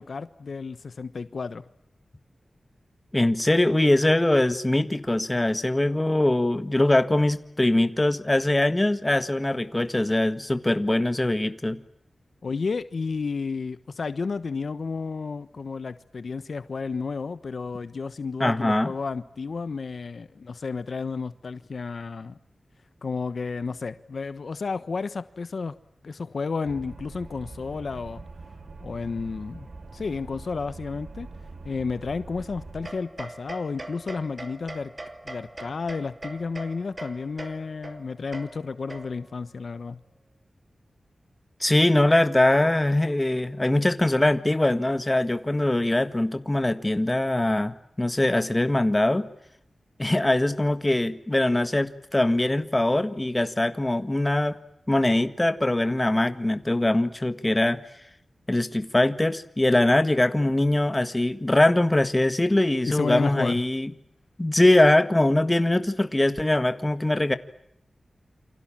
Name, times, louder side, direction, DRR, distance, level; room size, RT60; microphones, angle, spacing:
voice 1, 0.0-1.6 12.4-22.4 23.0-25.7 26.0-28.2 28.8-29.7 29.9-31.3 31.6-34.9 35.2-40.0 62.9-63.6, left 4 dB, 65° left, 13 dB, 1.2 m, -32 dB
voice 2, 3.1-11.8 18.4-18.9 41.6-49.3 50.0-54.6 54.9-57.8 58.5-63.9 64.4-67.3, left 1 dB, 20° left, 10 dB, 1.8 m, -22 dB
sound 1, 26.6-32.9, right 3 dB, 60° right, 3.1 m, -43 dB
sound 2, 32.8-39.4, right 2 dB, 30° right, 2.7 m, -41 dB
28.5 x 26.0 x 7.5 m, 0.76 s
wide cardioid pair, 95°, 0 cm